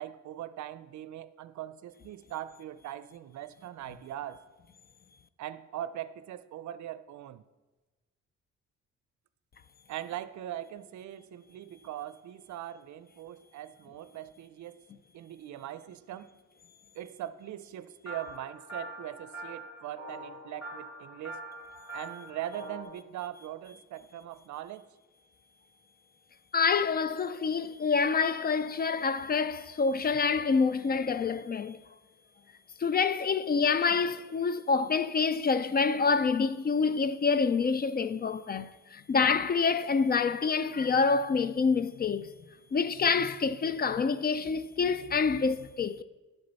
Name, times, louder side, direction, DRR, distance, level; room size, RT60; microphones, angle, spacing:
voice 1, 0.0-4.4 5.4-7.4 9.9-14.8 15.1-16.3 16.9-21.4 21.9-24.9, right 12 dB, 70° right, 0.5 m, -41 dB
sound 1, 18.1-22.8, right 1 dB, 50° left, 3.5 m, -43 dB
voice 2, 26.5-31.8 32.8-42.3 42.7-46.0, left 5 dB, 30° left, 0.4 m, -27 dB
11.0 x 6.6 x 4.1 m
cardioid pair, 90°, 30 cm